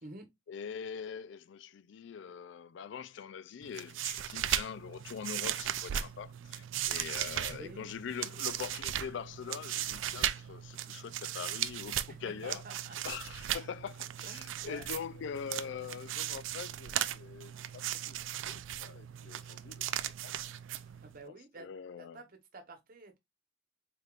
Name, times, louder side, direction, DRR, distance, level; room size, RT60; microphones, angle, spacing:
voice 1, 0.5-12.6 13.0-20.3 21.3-22.2, left 7 dB, 65° left, 0.3 m, -43 dB
sound 1, 3.6-21.2, right 12 dB, 75° right, 0.4 m, -37 dB
voice 2, 7.4-7.9 12.1-13.0 14.2-14.8 21.0-21.7 22.0-23.2, right 2 dB, 45° right, 1.0 m, -49 dB
4.0 x 3.4 x 2.4 m
head